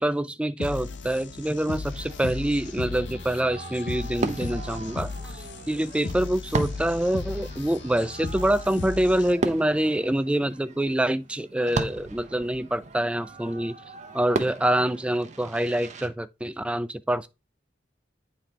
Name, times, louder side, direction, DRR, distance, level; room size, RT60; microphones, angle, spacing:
voice 1, 0.0-13.7 14.1-17.3, right 1 dB, 5° right, 0.3 m, -26 dB
sound 1, 0.6-9.6, left 3 dB, 80° left, 0.8 m, -36 dB
Fireworks, 1.8-16.1, right 3 dB, 40° right, 0.7 m, -36 dB
9.0 x 4.1 x 3.3 m
head